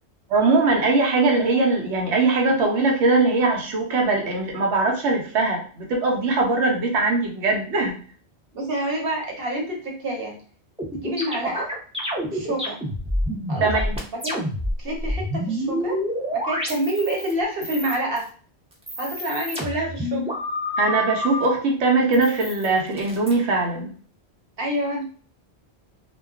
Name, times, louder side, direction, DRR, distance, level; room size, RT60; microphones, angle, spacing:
voice 1, 0.3-8.0 13.6-14.0 20.8-23.9, right 3 dB, 85° right, 1 dB, 0.9 m, -21 dB
voice 2, 8.5-10.4 11.0-11.7 12.3-12.8 13.5-13.7 14.2-14.4 14.8-16.0 16.3-18.3 19.0-20.3 24.6-25.1, right 1 dB, 60° right, 0 dB, 1.0 m, -27 dB
sound 1, 10.8-14.7 15.0-17.3 17.6-18.3 18.7-21.4 22.1-23.3, equal, 5° right, 0.5 m, -28 dB
2.3 x 2.1 x 3.5 m, 0.43 s
omnidirectional pair, 1.1 m